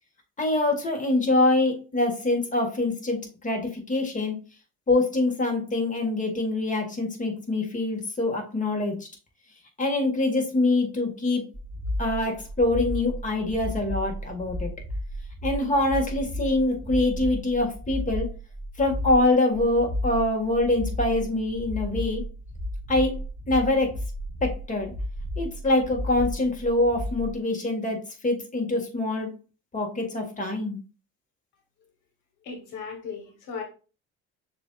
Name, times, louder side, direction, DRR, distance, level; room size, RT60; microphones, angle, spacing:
voice 1, 0.4-4.3 4.9-9.0 9.8-11.4 12.0-14.7 15.4-18.3 18.8-22.2 22.9-23.1 23.5-23.9 24.4-24.9 25.4-29.3 29.7-30.8, left 2 dB, 25° left, 1 dB, 1.7 m, -24 dB
sound 1, 11.5-27.4, left 1 dB, 5° right, 1.1 m, -33 dB
voice 2, 32.4-33.6, left 5 dB, 75° left, 3 dB, 1.3 m, -36 dB
6.6 x 2.7 x 2.4 m, 0.33 s
supercardioid pair, 80°, 31 cm